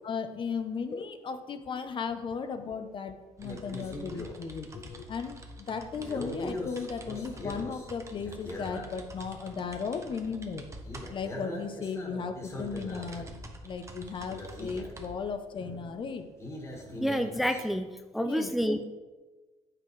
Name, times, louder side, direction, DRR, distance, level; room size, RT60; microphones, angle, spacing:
voice 1, 0.0-5.4 5.7-10.6 11.1-13.3 13.6-16.2 18.2-18.9, left 5 dB, 45° left, 8 dB, 0.9 m, -36 dB
sound 1, 3.4-4.4 5.0-5.2 5.9-9.2 9.5-9.6 9.9-10.0 10.3-10.6 10.8-13.5 14.0-14.1 14.3-15.1 15.5-17.6, left 1 dB, 25° left, 1.9 m, -41 dB
sound 2, 3.4-17.1, right 1 dB, 25° right, 1.2 m, -48 dB
voice 2, 17.0-17.9 18.1-18.9, equal, ahead, 7 dB, 0.5 m, -28 dB
8.4 x 5.9 x 4.8 m, 1.3 s
cardioid pair, 100°, 12 cm